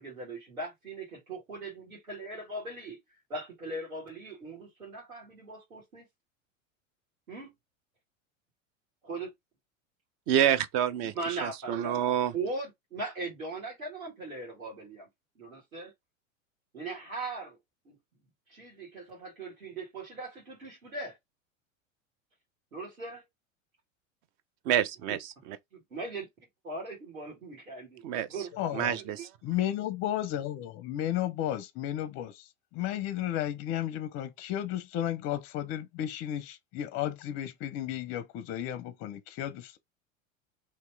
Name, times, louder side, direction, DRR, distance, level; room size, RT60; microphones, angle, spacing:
voice 1, 0.0-6.1 7.3-7.5 9.1-9.3 11.0-12.0 12.3-15.1 15.4-15.9 16.7-17.6 17.9-18.0 18.5-21.2 22.7-23.2 25.7-26.3 26.6-28.0 28.3-29.0, right 3 dB, 85° right, 1.9 m, -39 dB
voice 2, 10.3-12.3 24.6-25.2 25.5-25.6 28.0-28.3 28.7-29.3, right 10 dB, 40° right, 0.6 m, -27 dB
voice 3, 28.5-29.0 29.4-39.8, left 12 dB, 35° left, 0.5 m, -33 dB
2.9 x 2.8 x 3.3 m
hypercardioid pair, 90°, 41 cm